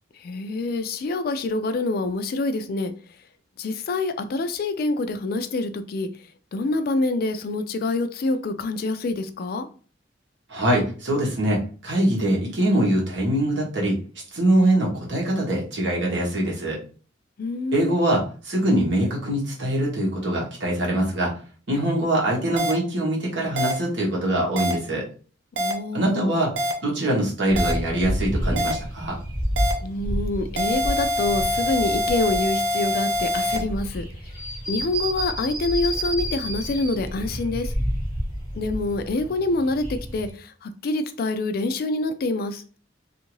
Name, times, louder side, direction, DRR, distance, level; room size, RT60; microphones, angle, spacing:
voice 1, 0.2-2.9 3.6-6.1 6.5-9.7 17.4-17.9 25.6-26.4 29.8-34.0 34.7-37.7 38.6-42.6, left 2 dB, 50° left, 0.3 m, -26 dB
voice 2, 10.5-14.0 14.3-16.8 17.7-21.3 21.7-25.0 25.9-26.5 26.8-29.2, right 1 dB, 65° right, 1.1 m, -23 dB
sound 1, 22.6-22.7 23.6-23.7 24.6-24.7 25.6-25.7 26.6-26.7 27.6-27.7 28.6-28.7 29.6-29.7 30.6-33.6, left 1 dB, 85° right, 0.6 m, -24 dB
sound 2, 27.5-40.3, equal, 5° right, 1.4 m, -30 dB
2.6 x 2.5 x 3.0 m
head